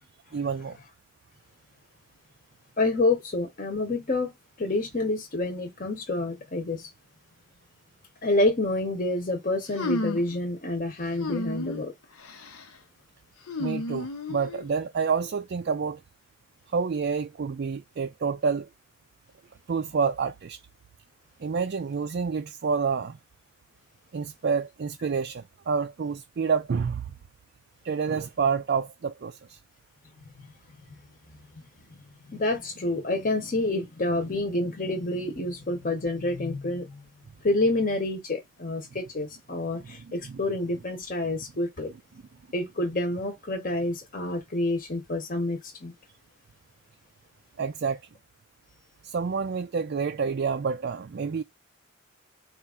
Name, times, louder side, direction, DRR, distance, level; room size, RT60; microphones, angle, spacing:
voice 1, 0.3-0.8 13.6-16.0 16.7-18.7 19.7-20.6 21.4-23.2 24.1-27.1 27.8-29.6 39.8-40.4 47.6-48.0 49.0-51.4, right 5 dB, 50° right, 0.3 m, -28 dB
voice 2, 2.8-4.3 4.6-6.9 8.2-11.9 32.3-36.9 37.4-41.9 42.5-45.9, left 2 dB, 40° left, 0.9 m, -28 dB
sound 1, 9.7-10.4 11.2-11.8 12.2-12.6 13.5-14.6, left 2 dB, 85° left, 0.8 m, -32 dB
4.3 x 2.5 x 3.6 m
head